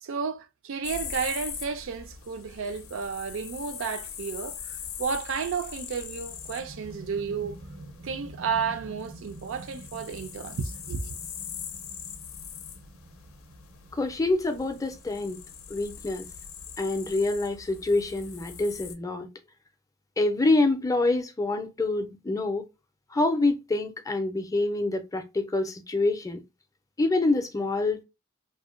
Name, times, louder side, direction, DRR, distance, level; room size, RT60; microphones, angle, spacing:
voice 1, 0.0-7.6 8.0-11.2, right 6 dB, 65° right, 0.4 m, -32 dB
sound 1, 0.8-18.9, left 7 dB, 80° left, 0.5 m, -42 dB
sound 2, 6.3-17.5, right 1 dB, 85° right, 1.0 m, -48 dB
voice 2, 13.9-15.4 15.7-16.3 16.8-19.3 20.2-22.6 23.1-26.4 27.0-28.0, left 2 dB, 15° left, 0.4 m, -26 dB
2.7 x 2.1 x 2.3 m
head